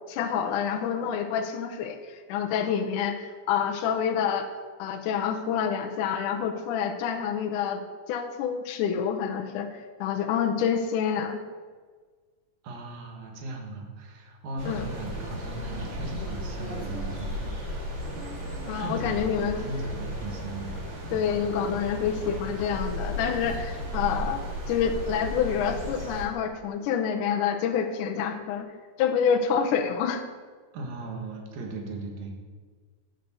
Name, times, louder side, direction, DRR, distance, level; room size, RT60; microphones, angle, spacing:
voice 1, 0.1-4.5 4.8-11.4 14.7-14.9 18.7-19.6 21.1-28.7 29.0-30.2, left 7 dB, 75° left, 3 dB, 2.0 m, -27 dB
voice 2, 12.6-17.7 18.7-19.3 19.7-20.7 21.1-21.3 23.9-24.1 30.7-32.4, right 2 dB, 80° right, 1 dB, 3.2 m, -38 dB
sound 1, 14.6-26.2, equal, 35° right, 2.8 m, -35 dB
8.7 x 6.6 x 6.8 m, 1.5 s
omnidirectional pair, 4.0 m